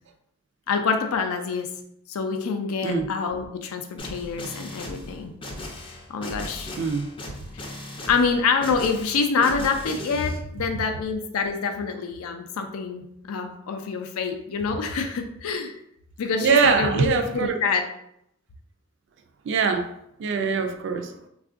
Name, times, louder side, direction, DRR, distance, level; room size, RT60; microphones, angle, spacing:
voice 1, 0.7-1.7 2.1-5.3 5.9-6.7 7.5-7.7 8.1-15.7 16.2-17.8, left 5 dB, 80° left, 6 dB, 0.4 m, -26 dB
sound 1, 4.0-10.4, left 1 dB, 25° left, 0.4 m, -37 dB
voice 2, 6.8-7.1 16.4-17.6 19.4-19.9 20.2-21.1, right 5 dB, 55° right, 6 dB, 0.3 m, -22 dB
3.5 x 2.4 x 2.4 m, 0.75 s
head